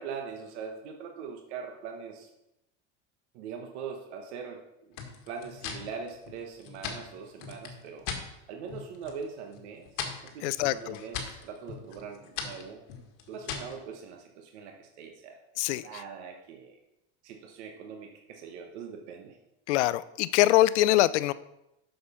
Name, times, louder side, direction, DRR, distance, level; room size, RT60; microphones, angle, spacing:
voice 1, 0.0-2.3 3.3-4.6 5.3-8.1 8.5-12.8 13.3-15.4 15.8-16.8 17.2-19.4, right 6 dB, 75° right, 3 dB, 1.3 m, -42 dB
sound 1, 4.9-8.3 8.7-9.2 9.5-13.8, left 6 dB, 65° left, 1.7 m, -40 dB
voice 2, 10.4-11.0 15.6-16.0 19.7-21.3, left 15 dB, 85° left, 17 dB, 0.5 m, -24 dB
7.0 x 6.4 x 5.6 m, 0.88 s
supercardioid pair, 110°, 34 cm